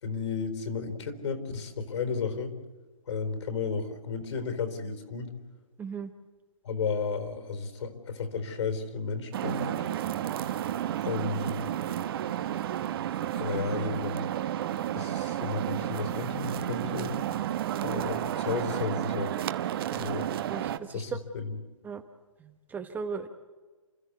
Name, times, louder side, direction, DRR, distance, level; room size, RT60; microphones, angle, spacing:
voice 1, 0.0-2.6 3.1-5.3 6.6-9.9 11.0-11.7 13.3-14.4 14.9-17.2 17.8-19.3 19.9-20.3 20.9-21.6, left 5 dB, 60° left, 8 dB, 4.2 m, -33 dB
voice 2, 5.8-6.1 20.5-21.2 21.8-22.0 22.4-23.3, right 6 dB, 10° right, 7 dB, 0.9 m, -37 dB
sound 1, 9.3-20.8, right 11 dB, 45° right, 1.1 m, -32 dB
30.0 x 13.5 x 8.2 m, 1.3 s
hypercardioid pair, 140°, 17 cm